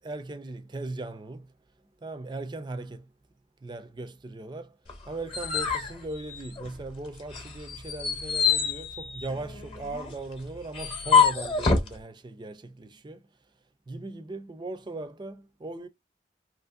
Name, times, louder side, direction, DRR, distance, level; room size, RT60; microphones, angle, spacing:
voice 1, 0.0-1.5 2.0-3.1 3.6-4.8 5.1-13.3 13.9-15.9, right 2 dB, 25° right, 0.4 m, -38 dB
sound 1, 4.9-6.9 7.3-11.9, left 5 dB, 30° left, 0.8 m, -26 dB
2.9 x 2.6 x 2.4 m
head